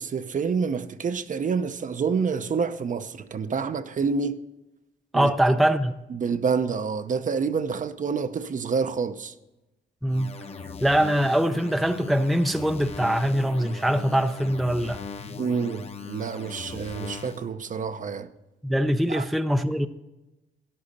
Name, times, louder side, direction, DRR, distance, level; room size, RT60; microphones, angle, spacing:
voice 1, 0.0-4.4 5.1-5.3 6.1-9.3 15.4-18.3 19.1-19.3, right 5 dB, 40° right, 0.7 m, -28 dB
voice 2, 5.1-5.9 10.0-10.3 10.8-15.0 18.6-19.9, right 1 dB, ahead, 0.5 m, -23 dB
sound 1, 10.1-17.5, left 4 dB, 30° left, 1.0 m, -39 dB
13.0 x 10.5 x 4.2 m
cardioid pair, 90°, 20 cm